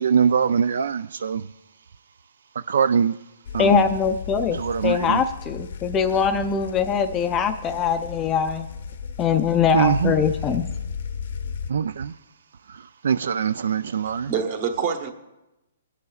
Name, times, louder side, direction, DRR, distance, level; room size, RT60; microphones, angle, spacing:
voice 1, 0.0-1.5 2.7-3.2 3.5-3.9 4.5-5.2 9.7-10.2 11.7-12.1 12.7-14.3, right 7 dB, 70° right, 0.3 m, -23 dB
sound 1, 3.5-11.7, left 6 dB, 60° left, 0.7 m, -35 dB
voice 2, 3.6-8.7 9.2-10.7, left 7 dB, 15° left, 0.4 m, -22 dB
voice 3, 14.0-15.1, right 6 dB, 35° right, 1.1 m, -26 dB
27.0 x 9.4 x 2.4 m
hypercardioid pair, 170°, 0 cm